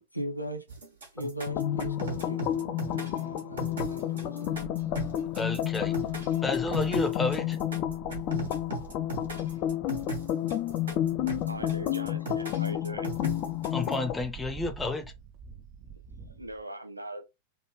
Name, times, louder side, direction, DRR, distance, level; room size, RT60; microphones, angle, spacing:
voice 1, 0.1-0.6 1.1-4.7, equal, 90° left, 0.6 m, -39 dB
sound 1, 0.7-13.9, right 4 dB, 70° right, 1.4 m, -38 dB
sound 2, 1.5-14.2, left 12 dB, 40° left, 0.4 m, -30 dB
sound 3, 4.5-16.6, right 7 dB, 35° right, 0.5 m, -49 dB
voice 2, 5.3-5.9 6.4-7.6 13.7-15.1, left 2 dB, 10° left, 0.7 m, -31 dB
voice 3, 11.5-13.1 16.4-17.2, right 1 dB, 85° right, 0.7 m, -40 dB
3.3 x 2.3 x 2.9 m
figure-of-eight pair, 90°, 0 cm